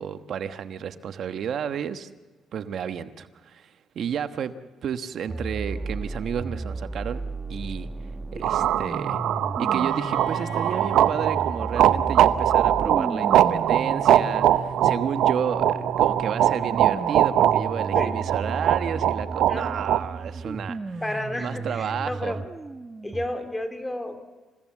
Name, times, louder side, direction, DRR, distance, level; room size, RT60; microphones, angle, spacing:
voice 1, 0.0-2.1 2.5-4.5 4.8-7.2 7.5-7.9 8.3-9.2 9.6-21.0 21.4-22.4, right 8 dB, 65° right, 10 dB, 1.2 m, -32 dB
sound 1, 5.3-23.3, right 3 dB, 25° right, 1.1 m, -34 dB
voice 2, 8.3-8.8 17.9-18.1 19.5-19.8 21.0-22.4 23.0-24.2, left 1 dB, 15° left, 6 dB, 2.9 m, -32 dB
sound 2, 8.4-20.0, right 11 dB, 80° right, 0.7 m, -22 dB
Bowed string instrument, 9.6-13.4, left 4 dB, 65° left, 3.4 m, -46 dB
29.0 x 16.5 x 7.3 m, 1.3 s
cardioid pair, 90°, 0 cm